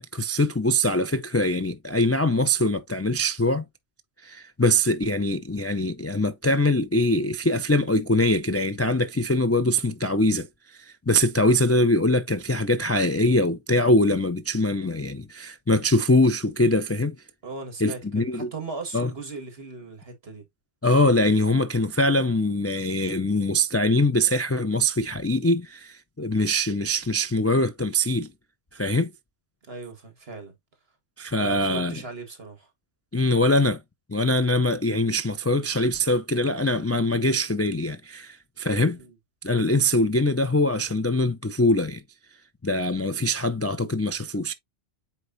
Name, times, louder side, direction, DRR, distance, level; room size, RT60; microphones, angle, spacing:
voice 1, 0.0-3.7 4.2-10.5 10.7-17.2 17.8-18.5 18.9-19.1 20.8-28.3 28.7-29.1 31.2-32.0 33.1-33.8 34.1-39.0 39.4-42.0 42.6-44.5, left 1 dB, 25° left, 0.3 m, -23 dB
voice 2, 17.4-20.4 29.6-30.6 31.4-32.7 38.9-39.1, right 3 dB, 60° right, 2.1 m, -38 dB
8.1 x 4.6 x 2.7 m
omnidirectional pair, 1.2 m